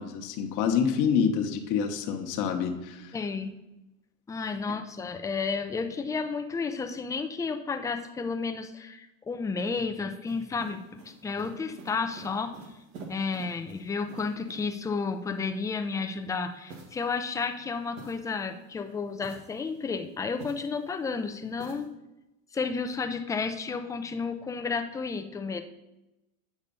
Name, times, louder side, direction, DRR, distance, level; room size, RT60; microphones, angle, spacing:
voice 1, 0.0-3.2, left 7 dB, 50° left, 4 dB, 1.0 m, -27 dB
voice 2, 3.1-3.6 4.3-10.8 11.2-12.5 13.1-21.9 22.5-25.6, left 4 dB, 10° left, 6 dB, 0.3 m, -32 dB
sound 1, 10.2-14.9 16.7-18.6 19.1-21.0 21.6-21.9, right 3 dB, 75° right, 1.8 m, -49 dB
8.3 x 4.1 x 5.3 m, 0.96 s
supercardioid pair, 115°, 41 cm